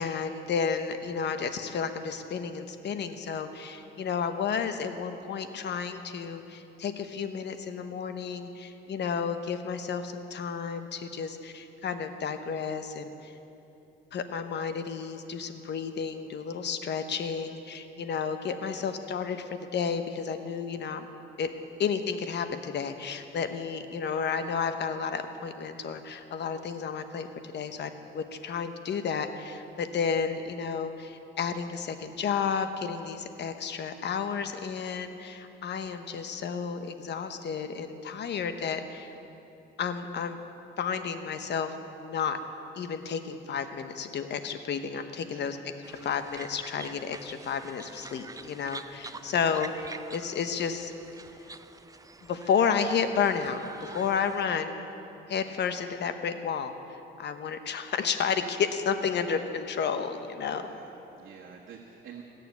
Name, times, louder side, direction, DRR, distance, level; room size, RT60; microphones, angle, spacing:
voice 1, 0.0-13.3 14.1-21.1 21.4-21.5 21.8-39.1 39.8-40.4 40.8-42.4 42.8-45.6 46.0-49.7 50.1-50.9 52.3-54.8 55.3-56.7 57.2-60.6, left 6 dB, 60° left, 9 dB, 1.0 m, -31 dB
voice 2, 45.3-45.7 49.1-49.5 59.0-59.3 60.5-62.2, right 7 dB, 70° right, -3 dB, 1.5 m, -49 dB
sound 1, 45.8-54.5, right 3 dB, 15° right, 0.5 m, -47 dB
16.5 x 6.8 x 9.5 m, 2.9 s
cardioid pair, 90°, 20 cm